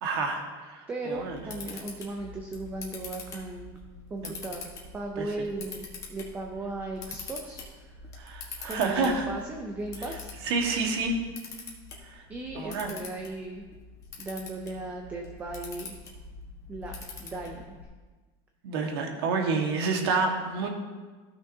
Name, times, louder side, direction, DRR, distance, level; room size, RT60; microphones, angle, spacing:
voice 1, 0.0-1.4 4.2-4.3 5.2-5.3 8.2-9.3 10.4-11.2 12.0-12.2 12.5-12.9 18.6-20.7, right 4 dB, 75° right, 2 dB, 1.5 m, -29 dB
voice 2, 0.9-3.8 4.1-4.6 4.9-8.1 8.6-10.3 12.3-13.7 14.2-16.0 16.7-17.0 17.2-17.6, right 2 dB, 10° right, 2 dB, 0.5 m, -37 dB
Camera, 1.1-17.8, left 4 dB, 25° left, 1.3 m, -44 dB
14.5 x 6.1 x 2.7 m, 1.3 s
cardioid pair, 180°, 13 cm